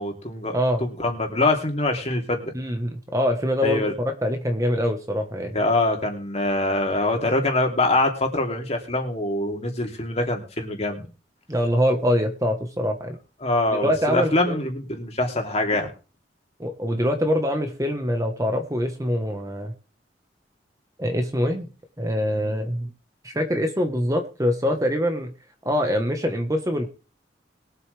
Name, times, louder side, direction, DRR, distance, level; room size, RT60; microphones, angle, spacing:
voice 1, 0.0-2.5 3.6-3.9 5.5-11.1 13.4-15.9, left 2 dB, 35° left, 2 dB, 3.0 m, -24 dB
voice 2, 2.5-3.8 4.2-5.6 11.5-13.2 13.8-14.7 16.6-19.7 21.0-21.7 22.0-22.9 23.2-25.3 25.6-26.9, equal, 20° right, 5 dB, 1.3 m, -24 dB
21.5 x 8.1 x 3.5 m, 0.34 s
head